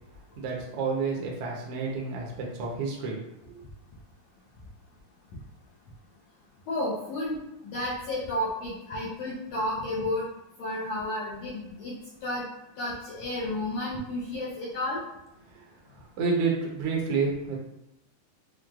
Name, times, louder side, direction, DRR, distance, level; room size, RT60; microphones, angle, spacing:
voice 1, 0.4-3.6 16.2-17.6, right 4 dB, 85° right, -2 dB, 1.3 m, -29 dB
voice 2, 6.7-10.3 10.6-12.0 12.2-12.4 12.8-15.0, left 1 dB, 85° left, -6 dB, 1.5 m, -32 dB
6.1 x 2.3 x 2.4 m, 0.87 s
omnidirectional pair, 3.8 m